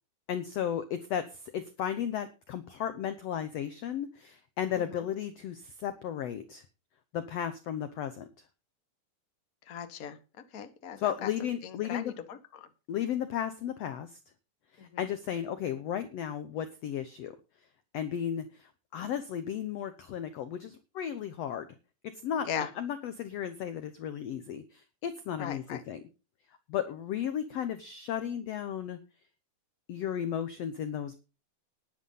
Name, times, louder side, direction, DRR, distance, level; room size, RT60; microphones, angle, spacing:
voice 1, 0.3-6.6 7.1-8.3 11.0-12.1 12.9-14.1 14.7-17.4 17.9-21.7 22.0-26.0 26.7-29.0 29.9-31.2, left 9 dB, 75° left, 11 dB, 1.5 m, -34 dB
voice 2, 9.7-10.2 10.5-12.7 14.8-15.0 22.5-22.7 25.4-25.8, left 8 dB, 55° left, 9 dB, 0.9 m, -39 dB
11.0 x 10.0 x 5.6 m, 0.33 s
omnidirectional pair, 4.1 m